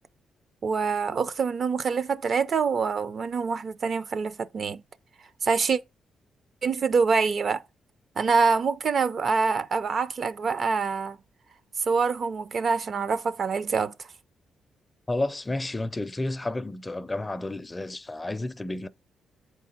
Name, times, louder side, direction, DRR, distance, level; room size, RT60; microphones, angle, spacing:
voice 1, 0.6-4.8 5.4-5.8 6.6-7.6 8.2-11.2 11.9-13.9, right 5 dB, 50° right, 0.5 m, -25 dB
voice 2, 15.1-18.9, left 2 dB, 20° left, 0.4 m, -31 dB
7.9 x 4.7 x 4.2 m
cardioid pair, 90°, 0 cm